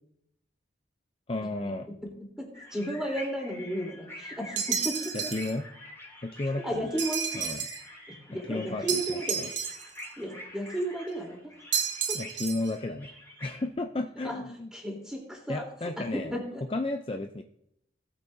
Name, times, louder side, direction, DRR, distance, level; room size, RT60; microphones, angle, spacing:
voice 1, 1.3-1.9 5.1-5.7 6.2-7.0 7.3-7.7 8.5-9.5 12.1-13.1 13.4-14.7 15.5-16.3 16.7-17.4, left 2 dB, 30° left, 5 dB, 0.5 m, -33 dB
voice 2, 2.4-5.3 6.5-7.5 8.1-9.4 10.2-11.5 12.1-12.2 14.2-14.4 14.7-15.6 16.1-16.6, right 1 dB, 5° right, -2 dB, 3.4 m, -34 dB
sound 1, 2.5-13.6, left 1 dB, 15° left, 3.1 m, -46 dB
sound 2, 4.6-5.5 7.0-7.9 8.9-10.1 11.7-12.7, right 8 dB, 80° right, 1.3 m, -31 dB
19.0 x 8.5 x 2.7 m, 0.76 s
head